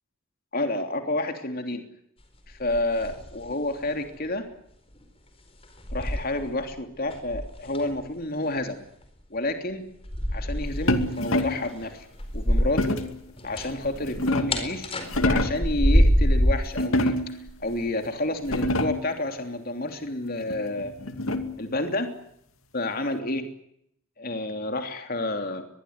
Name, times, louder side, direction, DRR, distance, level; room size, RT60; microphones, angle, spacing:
voice 1, 0.5-1.9 2.5-4.5 5.9-8.8 9.3-9.9 10.3-12.1 12.3-13.0 13.4-17.2 17.6-20.9 21.6-22.1 22.7-23.5 24.2-25.7, left 2 dB, 45° left, 6 dB, 3.2 m, -29 dB
Sitting Office Chair, 2.5-3.6 3.8-4.1 5.0-5.1 5.6-6.7 7.1-8.0 10.0-13.0 13.3-16.7 17.5-17.9 18.5-18.7, equal, 30° left, 4.3 m, -26 dB
sound 1, 10.9-11.7 12.8-13.2 13.8-14.7 15.1-15.7 16.8-17.5 18.0-18.1 18.4-19.1 20.5-21.7, left 1 dB, 85° left, 2.5 m, -26 dB
23.5 x 22.0 x 9.6 m, 0.73 s
head